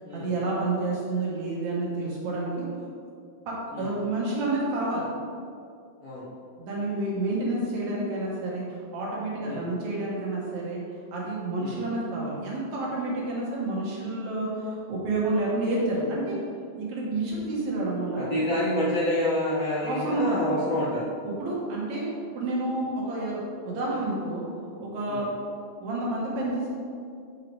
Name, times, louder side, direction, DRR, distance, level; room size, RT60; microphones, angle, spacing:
voice 1, 0.1-2.7 3.5-5.0 6.6-10.8 11.1-16.4 16.8-18.3 19.8-20.4 21.2-22.1 22.3-24.4 24.8-25.3 25.8-26.7, right 2 dB, 60° right, -5 dB, 2.2 m, -29 dB
voice 2, 18.3-21.1 25.1-25.2, left 1 dB, 80° left, -8 dB, 1.4 m, -27 dB
6.3 x 4.8 x 4.6 m, 2.4 s
omnidirectional pair, 4.3 m